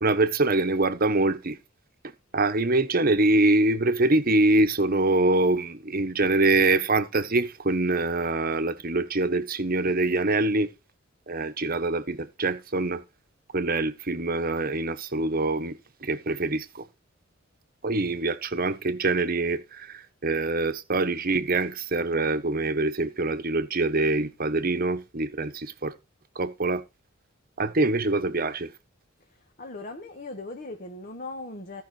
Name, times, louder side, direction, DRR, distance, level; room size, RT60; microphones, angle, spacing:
voice 1, 0.0-1.6 2.3-10.7 11.3-13.0 13.5-16.8 17.8-25.9 26.4-26.8 27.6-28.7, right 2 dB, 45° right, 1.1 m, -24 dB
voice 2, 29.3-31.8, left 2 dB, 40° left, 1.6 m, -39 dB
16.5 x 5.8 x 4.3 m
head